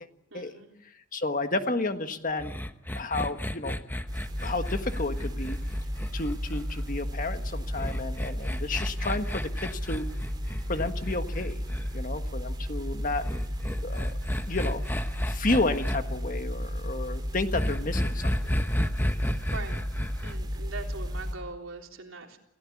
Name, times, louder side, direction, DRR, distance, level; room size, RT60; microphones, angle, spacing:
voice 1, 0.3-0.7 19.5-19.8 20.2-22.5, right 3 dB, 80° right, 2 dB, 3.5 m, -41 dB
voice 2, 1.1-2.5 2.9-3.8 4.4-5.6 6.1-10.0 10.7-11.6 11.9-13.2 13.8-14.1 14.5-14.8 15.3-18.5, left 2 dB, 40° left, 7 dB, 1.6 m, -31 dB
sound 1, 2.4-6.8 7.7-11.9 13.2-16.0 17.5-20.3, equal, 10° left, 1.0 m, -32 dB
sound 2, 4.1-21.3, equal, 20° right, 3.8 m, -33 dB
28.5 x 16.0 x 8.5 m, 0.84 s
head